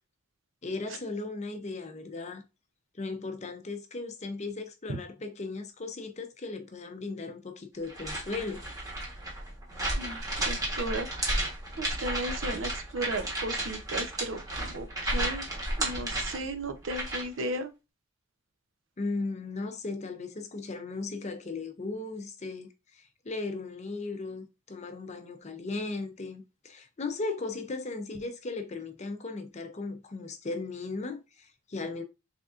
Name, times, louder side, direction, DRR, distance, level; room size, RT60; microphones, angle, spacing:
voice 1, 0.6-2.4 3.0-8.6 19.0-32.0, left 3 dB, 35° left, 0.6 m, -37 dB
sound 1, 7.9-17.4, right 1 dB, 20° right, 1.2 m, -33 dB
voice 2, 10.0-11.1 11.8-15.5 15.8-17.7, right 2 dB, 70° right, 0.7 m, -35 dB
3.9 x 3.4 x 2.4 m
head